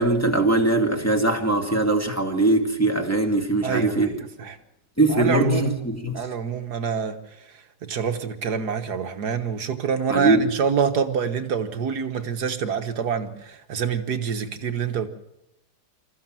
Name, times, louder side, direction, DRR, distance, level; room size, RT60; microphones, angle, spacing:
voice 1, 0.0-4.3 5.0-6.3 10.1-10.5, right 2 dB, 5° left, 2 dB, 2.0 m, -21 dB
voice 2, 3.6-4.6 5.1-5.8 6.1-7.2 7.8-15.1, right 6 dB, 50° right, 8 dB, 1.8 m, -26 dB
26.5 x 14.5 x 7.6 m, 0.85 s
omnidirectional pair, 2.3 m